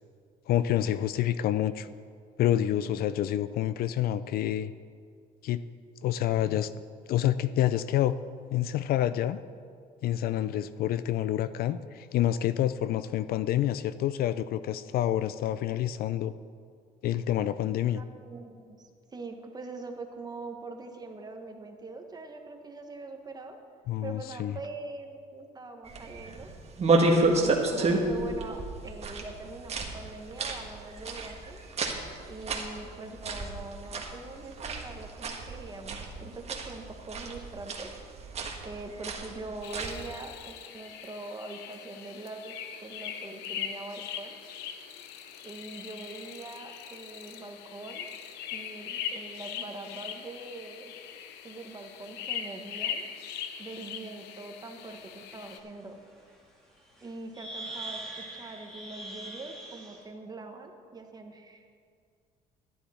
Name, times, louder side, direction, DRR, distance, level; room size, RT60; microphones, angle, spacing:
voice 1, 0.5-1.9 2.4-4.7 5.4-5.6 6.0-6.7 7.1-8.1 8.5-9.4 10.0-16.3 17.0-18.0 23.9-24.5, left 12 dB, 65° left, 14 dB, 0.4 m, -28 dB
voice 2, 17.9-23.6 24.0-26.5 27.2-31.6 32.3-37.9 38.6-42.5 42.8-44.4 45.4-48.1 48.5-50.9 51.4-53.0 53.6-56.0 57.0-61.6, right 3 dB, 25° right, 4 dB, 1.2 m, -43 dB
sound 1, 25.8-40.1, right 2 dB, 40° right, 1.4 m, -31 dB
sound 2, 39.6-55.6, left 8 dB, 90° left, 0.8 m, -40 dB
sound 3, 54.8-54.9 55.4-55.6 57.0-57.1 57.3-60.0, right 1 dB, 5° left, 2.3 m, -41 dB
11.5 x 10.0 x 4.3 m, 2.2 s
cardioid pair, 110°, 17 cm